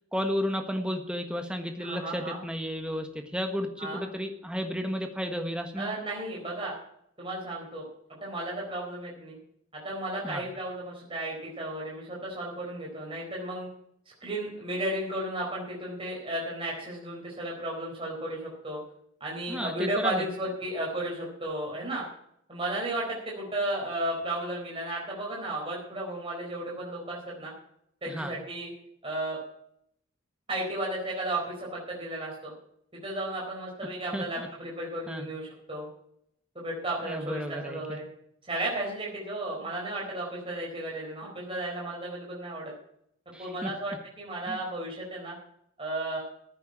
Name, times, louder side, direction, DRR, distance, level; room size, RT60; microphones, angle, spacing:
voice 1, 0.1-6.0 10.2-10.5 19.5-20.2 28.1-28.3 34.1-34.5 35.1-35.3 37.0-38.0 43.3-43.7 44.5-44.6, equal, 5° right, 5 dB, 1.4 m, -33 dB
voice 2, 1.8-2.4 3.8-4.0 5.8-6.8 7.2-7.8 8.2-9.4 9.7-13.7 14.2-18.8 19.2-22.0 22.5-27.5 28.0-28.7 29.0-29.4 30.5-32.5 33.0-35.9 36.5-38.0 38.5-42.7 43.4-45.4 45.8-46.2, right 1 dB, 25° right, -3 dB, 4.3 m, -34 dB
14.0 x 9.2 x 6.0 m, 0.72 s
head